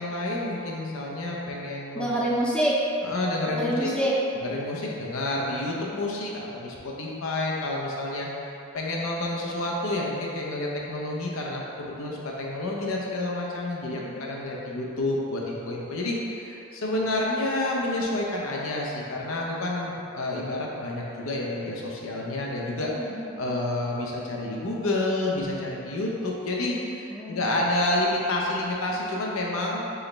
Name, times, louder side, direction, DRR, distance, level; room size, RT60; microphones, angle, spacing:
voice 1, 0.0-2.1 3.0-3.9 4.4-8.3 8.7-22.9 23.4-29.8, left 2 dB, 90° left, -2 dB, 0.7 m, -29 dB
voice 2, 1.9-2.8 3.5-4.5 13.9-14.1 23.0-23.4 27.1-27.4, right 1 dB, 5° left, -6 dB, 0.5 m, -27 dB
4.6 x 3.1 x 3.3 m, 2.8 s
head